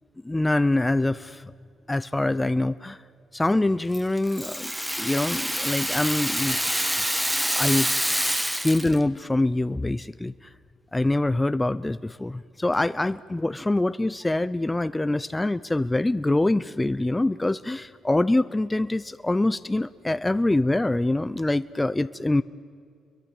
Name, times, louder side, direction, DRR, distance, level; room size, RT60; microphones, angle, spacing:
voice 1, 0.2-1.5 1.9-3.0 3.3-4.7 5.0-6.8 7.6-7.9 8.6-10.3 10.9-22.4, left 2 dB, 15° left, 13 dB, 0.6 m, -24 dB
Rattle (instrument), 3.9-9.0, equal, 5° right, 1.8 m, -27 dB
30.0 x 23.0 x 7.4 m, 2.3 s
cardioid pair, 90°, 0 cm